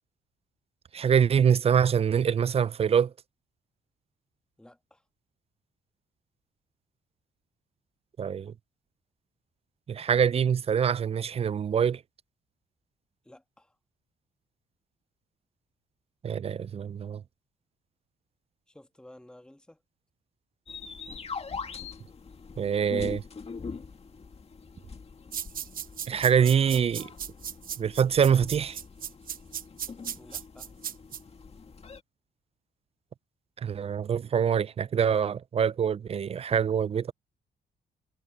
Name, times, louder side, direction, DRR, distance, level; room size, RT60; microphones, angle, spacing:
voice 1, 0.9-3.1 8.2-8.5 9.9-12.0 16.2-17.2 22.6-23.2 26.1-27.1 27.8-28.8 33.6-37.1, right 7 dB, 35° right, 0.4 m, -25 dB
voice 2, 4.6-5.0 13.2-13.8 18.7-19.8 30.2-30.7, left 1 dB, 5° left, 1.4 m, -53 dB
sound 1, 20.7-32.0, left 5 dB, 35° left, 2.1 m, -43 dB
sound 2, 25.3-31.2, right 9 dB, 55° right, 0.9 m, -36 dB
cardioid pair, 85°, 17 cm